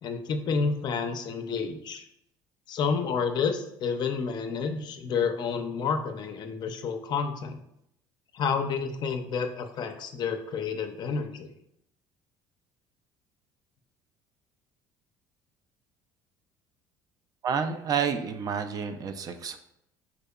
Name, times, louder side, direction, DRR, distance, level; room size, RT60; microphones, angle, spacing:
voice 1, 0.0-2.0 2.7-7.6 8.3-11.5, left 5 dB, 50° left, 6 dB, 0.4 m, -30 dB
voice 2, 17.4-19.6, right 6 dB, 45° right, 8 dB, 0.3 m, -29 dB
3.8 x 2.7 x 2.2 m, 0.78 s
supercardioid pair, 85°, 9 cm